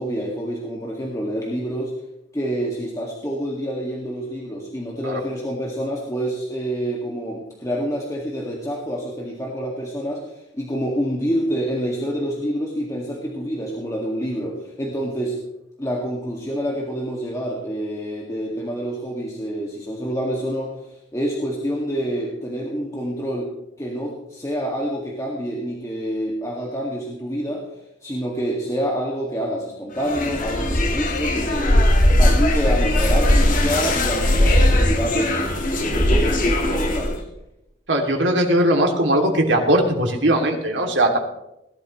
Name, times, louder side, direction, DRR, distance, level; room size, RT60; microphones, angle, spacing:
voice 1, 0.0-1.9 2.3-15.4 15.8-23.5 23.8-27.6 28.0-31.9 32.2-35.4 35.9-37.2, equal, 20° left, -3 dB, 2.1 m, -27 dB
sound 1, 30.0-37.2, left 1 dB, 50° left, 1.9 m, -19 dB
voice 2, 37.9-41.2, right 1 dB, 80° right, 1 dB, 2.8 m, -19 dB
19.0 x 12.0 x 3.2 m, 0.87 s
head